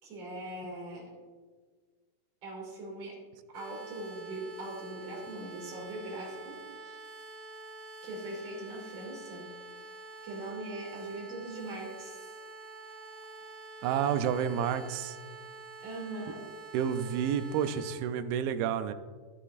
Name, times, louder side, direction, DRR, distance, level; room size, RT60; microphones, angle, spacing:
voice 1, 0.0-1.1 2.4-3.2 3.5-7.0 8.0-9.5 10.2-12.3 15.8-16.5, right 1 dB, 45° right, -4 dB, 3.5 m, -41 dB
sound 1, 3.5-18.0, right 2 dB, 65° right, 2.3 m, -47 dB
voice 2, 13.8-15.2 16.7-18.9, right 8 dB, 85° right, 10 dB, 2.4 m, -30 dB
14.0 x 8.2 x 2.6 m, 1.5 s
omnidirectional pair, 4.2 m